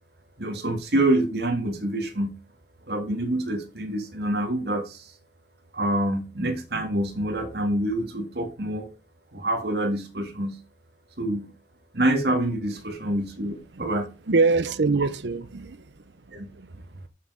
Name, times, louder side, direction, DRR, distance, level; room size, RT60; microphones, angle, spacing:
voice 1, 0.4-2.3 2.9-5.1 5.7-8.9 9.3-10.6 11.2-11.5 11.9-14.1 16.3-16.5, right 1 dB, 60° right, 2.1 m, -26 dB
voice 2, 14.3-15.9 16.3-16.8, right 3 dB, 80° right, 0.7 m, -24 dB
7.6 x 7.0 x 6.2 m
head